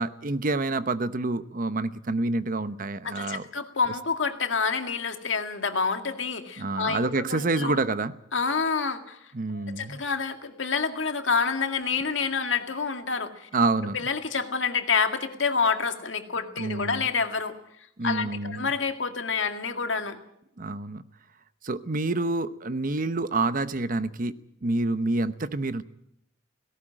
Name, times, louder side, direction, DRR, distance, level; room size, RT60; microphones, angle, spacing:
voice 1, 0.0-3.5 6.6-8.1 9.3-10.0 13.5-14.0 16.6-17.1 18.0-18.7 20.6-21.0 21.6-25.8, right 2 dB, 45° right, 13 dB, 0.9 m, -28 dB
voice 2, 3.0-7.8 8.3-9.2 9.5-13.5 13.9-17.5 18.0-20.2, left 5 dB, 85° left, 6 dB, 2.1 m, -28 dB
18.0 x 17.5 x 8.9 m, 0.75 s
head